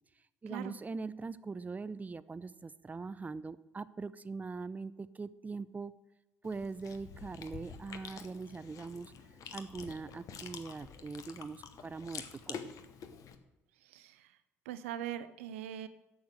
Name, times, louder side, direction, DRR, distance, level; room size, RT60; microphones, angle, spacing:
voice 1, 0.4-5.9 6.4-9.1 9.5-12.6, right 4 dB, 20° right, 17 dB, 0.6 m, -42 dB
Chewing mastication, 6.4-13.3, left 7 dB, 55° left, 1.1 m, -48 dB
voice 2, 13.9-14.3 14.7-15.9, right 11 dB, 75° right, 13 dB, 0.7 m, -41 dB
8.5 x 7.2 x 7.8 m, 1.0 s
figure-of-eight pair, 55°, 7 cm